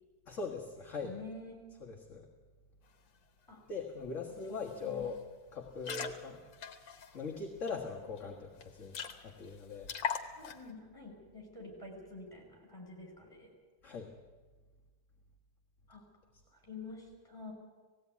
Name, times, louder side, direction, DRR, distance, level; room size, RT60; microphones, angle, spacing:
voice 1, 0.3-1.2 1.8-2.3 3.7-5.2 5.5-6.4 7.1-9.0 9.2-9.9 13.8-14.1, left 4 dB, 45° left, 0 dB, 1.9 m, -41 dB
voice 2, 1.0-1.6 3.5-3.6 4.5-5.1 5.9-6.1 10.4-13.5 15.9-16.1 16.5-17.5, left 3 dB, 10° left, 1 dB, 5.7 m, -48 dB
sound 1, 4.0-4.1 4.4-4.7 5.0-5.2 5.6-7.7 8.2-8.3 8.5-8.6 8.9-9.5 9.8-10.7, left 7 dB, 85° left, 2.0 m, -40 dB
18.5 x 16.0 x 9.4 m, 1.4 s
omnidirectional pair, 2.0 m